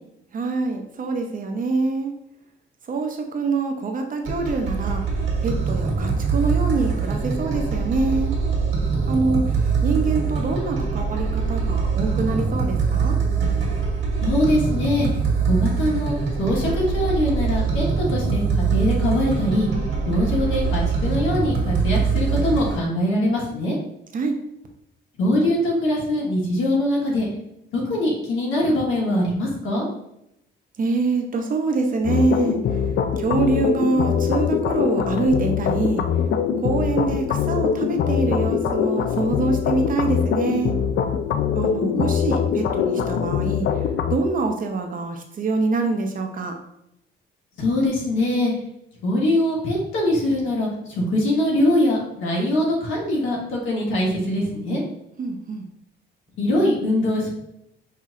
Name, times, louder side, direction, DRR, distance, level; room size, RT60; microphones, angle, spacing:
voice 1, 0.3-2.1 2.9-5.0 5.4-8.3 9.1-9.6 9.8-13.2 24.1-24.4 30.8-32.6 33.2-36.0 36.6-40.7 41.5-43.7 44.1-46.6 55.2-55.6, right 3 dB, 45° right, 4 dB, 0.7 m, -25 dB
sound 1, 4.3-22.8, right 5 dB, 80° right, 1.5 m, -23 dB
voice 2, 14.2-15.1 15.5-18.4 18.7-19.7 20.0-23.8 25.2-27.3 27.7-29.8 47.6-48.5 49.0-54.8 56.4-57.3, left 1 dB, 85° left, -3 dB, 1.4 m, -22 dB
sound 2, 32.0-44.2, left 7 dB, 65° left, 0.4 m, -23 dB
5.7 x 2.8 x 2.4 m, 0.80 s
cardioid pair, 90°, 20 cm